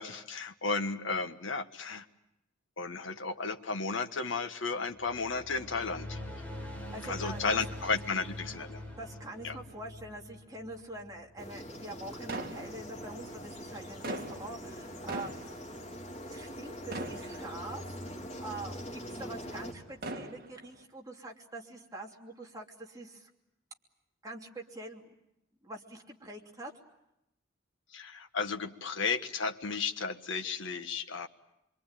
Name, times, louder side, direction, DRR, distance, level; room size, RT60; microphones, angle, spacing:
voice 1, 0.0-2.0 2.8-6.2 7.0-8.8 9.4-9.6 27.9-31.3, left 4 dB, 70° left, 7 dB, 1.4 m, -34 dB
sound 1, 4.9-11.5, left 1 dB, 10° left, 6.3 m, -44 dB
voice 2, 6.9-7.4 9.0-15.6 16.3-23.3 24.2-25.1 25.6-26.7, right 2 dB, 20° right, 0 dB, 3.0 m, -45 dB
sound 2, 11.4-19.7, equal, 35° left, 4.2 m, -43 dB
sound 3, 12.3-13.3 13.8-16.6 16.9-18.0 18.6-18.7 19.8-20.8, right 2 dB, 50° right, 2.3 m, -41 dB
25.5 x 24.5 x 9.0 m, 0.86 s
head